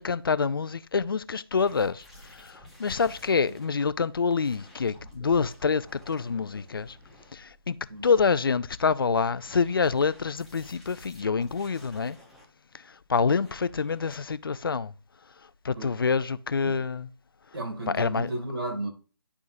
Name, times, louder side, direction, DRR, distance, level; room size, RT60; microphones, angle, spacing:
voice 1, 0.0-2.0 2.3-7.0 7.3-12.2 13.1-14.9 15.6-17.1 17.9-18.3, left 5 dB, 60° left, 0.4 m, -26 dB
sound 1, 1.5-3.7 4.3-7.8 9.0-12.4 13.3-14.1, left 1 dB, ahead, 0.5 m, -51 dB
voice 2, 17.5-18.9, right 1 dB, 70° right, 2.5 m, -33 dB
11.0 x 3.6 x 2.6 m
figure-of-eight pair, 155°, 14 cm